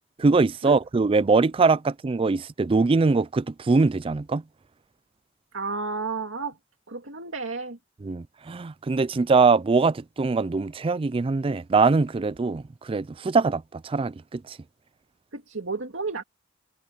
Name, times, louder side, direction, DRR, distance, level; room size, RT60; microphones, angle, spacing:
voice 1, 0.2-4.4 8.0-14.6, right 4 dB, 30° right, 0.4 m, -22 dB
voice 2, 5.5-6.6 6.9-7.8 15.3-16.2, right 4 dB, 75° right, 2.2 m, -32 dB
head